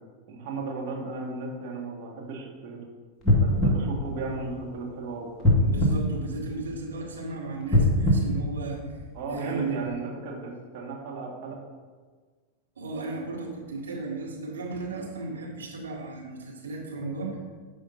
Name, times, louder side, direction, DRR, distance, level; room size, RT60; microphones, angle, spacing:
voice 1, 0.3-2.8 3.4-5.5 9.1-11.6, right 3 dB, 45° right, -3 dB, 2.0 m, -35 dB
sound 1, 3.2-4.9 5.4-7.0 7.6-9.3 9.9-10.0, left 1 dB, 15° left, 1.9 m, -23 dB
voice 2, 5.6-8.8 9.3-9.8 12.8-17.4, right 3 dB, 70° right, -3 dB, 1.9 m, -35 dB
13.0 x 5.0 x 2.8 m, 1.5 s
figure-of-eight pair, 90°, 0 cm